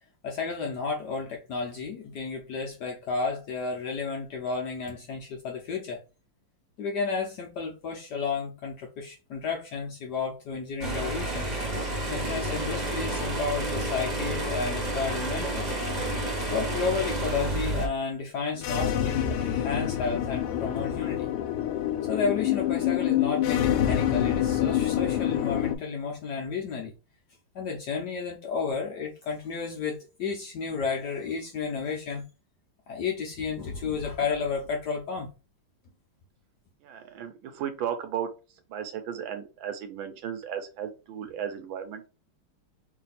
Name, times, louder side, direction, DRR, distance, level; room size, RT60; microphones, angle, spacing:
voice 1, 0.2-6.0 6.8-11.5 12.1-15.7 16.5-21.3 22.1-26.9 27.5-32.2 32.9-35.3, left 5 dB, 65° left, 1.0 m, -32 dB
sound 1, 10.8-17.9, right 1 dB, 30° right, 0.8 m, -30 dB
sound 2, 18.6-25.8, left 11 dB, 85° left, 1.5 m, -26 dB
voice 2, 36.8-38.3 38.7-42.1, right 9 dB, 75° right, 1.3 m, -35 dB
3.3 x 2.7 x 4.0 m
omnidirectional pair, 2.4 m